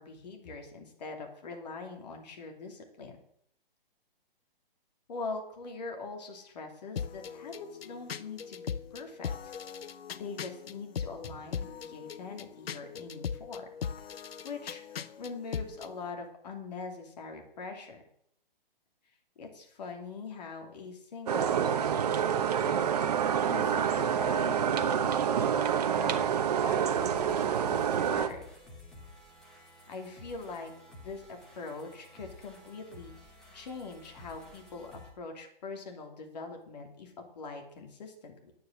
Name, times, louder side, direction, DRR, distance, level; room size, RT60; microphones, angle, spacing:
voice 1, 0.0-3.2 5.1-9.5 10.1-13.7 14.4-18.0 19.4-28.5 29.9-30.7 31.0-38.5, left 4 dB, 45° left, 3 dB, 2.8 m, -43 dB
sound 1, 7.0-15.9, left 7 dB, 85° left, 0.8 m, -39 dB
sound 2, 21.3-28.3, right 8 dB, 45° right, 1.0 m, -27 dB
sound 3, 26.7-35.1, left 2 dB, ahead, 0.5 m, -52 dB
10.0 x 9.3 x 6.4 m, 0.72 s
hypercardioid pair, 170°, 29 cm